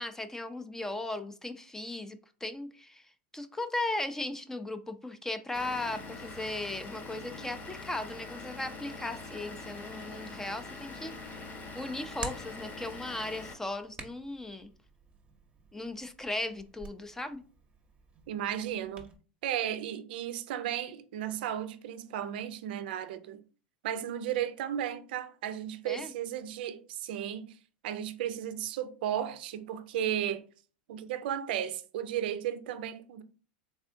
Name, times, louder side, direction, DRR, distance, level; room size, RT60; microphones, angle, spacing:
voice 1, 0.0-3.0 3.3-14.7 15.7-17.4 25.9-26.1, left 2 dB, 10° left, 0.4 m, -37 dB
Vehicle / Engine, 5.5-13.5, left 3 dB, 30° left, 0.8 m, -44 dB
Hands, 10.7-19.2, right 4 dB, 20° right, 0.8 m, -49 dB
voice 2, 18.3-19.1 19.4-23.4 23.8-27.6 27.8-30.4 30.9-33.2, right 10 dB, 70° right, 0.4 m, -34 dB
3.6 x 3.3 x 2.6 m
hypercardioid pair, 110°, 5 cm